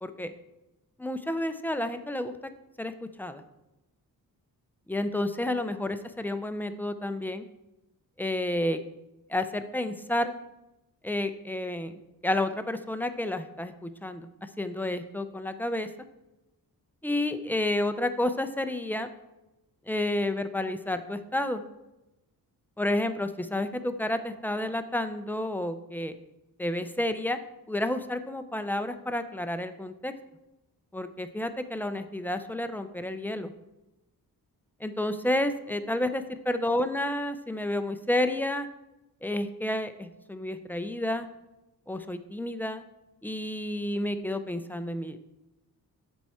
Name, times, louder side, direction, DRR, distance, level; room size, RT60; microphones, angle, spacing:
voice 1, 0.0-0.3 1.0-2.5 2.8-2.9 3.2-3.4 4.9-7.4 8.2-8.8 9.3-10.3 11.0-15.9 17.0-19.1 19.9-21.6 22.8-26.1 26.6-27.4 27.7-30.1 30.9-33.5 34.8-38.7 39.2-41.3 41.9-42.8 43.2-45.2, left 1 dB, 5° left, 9 dB, 0.4 m, -30 dB
13.5 x 4.6 x 4.3 m, 0.96 s
wide cardioid pair, 155°, 38 cm